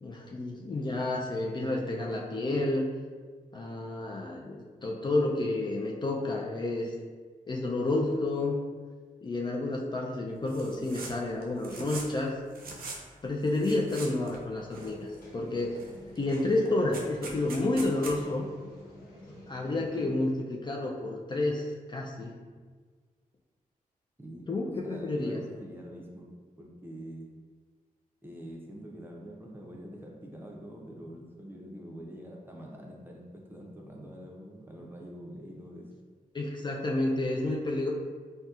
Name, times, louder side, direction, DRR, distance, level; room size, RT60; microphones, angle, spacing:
voice 1, 0.0-2.9 3.5-6.9 7.5-8.6 9.2-12.4 13.2-15.8 16.2-18.5 19.5-22.4 24.5-25.4 36.3-37.9, left 2 dB, 30° left, -1 dB, 0.3 m, -30 dB
sound 1, 10.5-11.1 11.4-12.2 12.5-13.0 13.5-14.4 14.7-15.3 15.7-15.9 16.2-18.2, right 3 dB, 85° right, 0.5 m, -42 dB
sound 2, 14.7-20.1, left 1 dB, 80° left, 0.9 m, -49 dB
voice 2, 24.2-24.5 24.8-26.3 26.6-27.3 28.2-35.9, equal, 15° right, -2 dB, 0.6 m, -45 dB
4.0 x 2.2 x 2.4 m, 1.5 s
cardioid pair, 75°, 15 cm